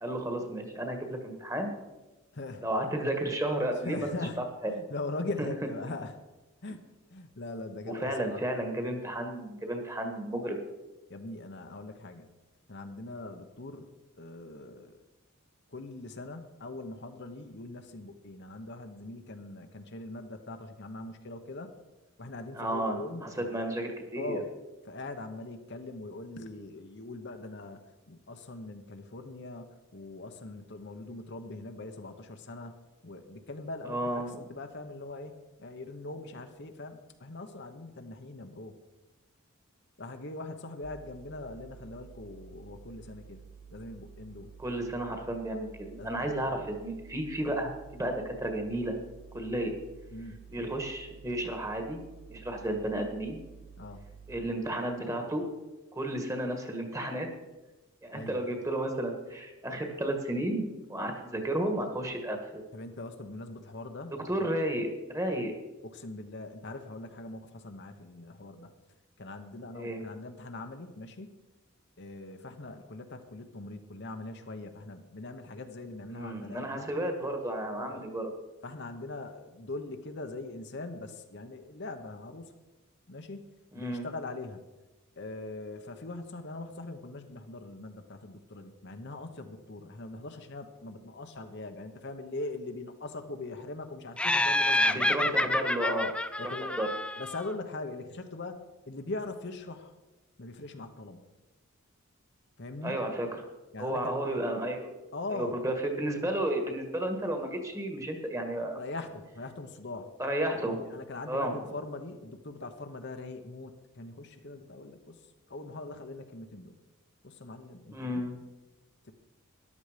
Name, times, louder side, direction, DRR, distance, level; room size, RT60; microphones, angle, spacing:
voice 1, 0.0-1.7 2.6-4.1 4.6-4.7 5.4-5.5 7.8-10.6 22.6-24.4 33.9-34.4 44.6-48.9 49.3-49.7 50.5-52.0 52.3-53.4 54.3-55.5 55.9-57.3 58.0-62.6 64.3-65.5 69.7-70.0 76.1-78.3 83.7-84.1 94.9-96.1 96.4-96.9 102.8-103.4 103.8-104.9 105.3-108.8 110.2-110.8 111.3-111.7 117.9-118.4, right 1 dB, 15° right, 4 dB, 1.6 m, -32 dB
voice 2, 2.3-2.6 3.8-6.1 6.6-6.8 7.1-8.4 11.1-12.3 12.7-13.9 14.2-15.0 15.7-21.7 22.2-23.7 24.2-24.5 24.9-27.8 28.1-35.3 35.6-38.8 40.0-43.4 43.7-44.5 46.0-46.7 50.1-50.4 53.8-54.0 58.1-58.4 62.7-64.5 65.8-68.7 69.2-71.3 72.0-77.0 77.7-78.1 78.6-82.5 83.1-83.4 83.8-84.6 85.2-95.1 95.8-96.8 97.2-99.9 100.4-101.3 102.6-103.0 103.7-104.2 105.1-105.6 108.7-110.1 110.6-115.2 115.5-116.7 117.2-118.2, left 2 dB, 55° left, 6 dB, 1.0 m, -41 dB
sound 1, 40.8-54.4, right 6 dB, 75° right, 5.7 m, -51 dB
Laughter, 94.2-97.5, left 1 dB, 5° left, 0.3 m, -28 dB
14.0 x 11.0 x 5.1 m, 1.1 s
head